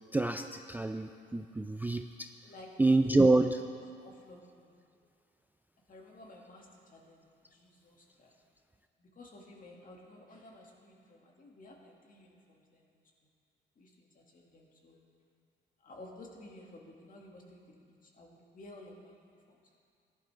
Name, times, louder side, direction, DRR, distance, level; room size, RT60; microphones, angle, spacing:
voice 1, 0.1-2.3 2.8-3.5, right 2 dB, 10° right, 6 dB, 0.4 m, -27 dB
voice 2, 2.4-3.3 4.0-5.0 5.9-8.4 9.0-12.9 13.8-15.0 15.8-19.7, left 2 dB, 45° left, -1 dB, 2.0 m, -54 dB
15.0 x 11.0 x 3.3 m, 2.3 s
cardioid pair, 90°, 20 cm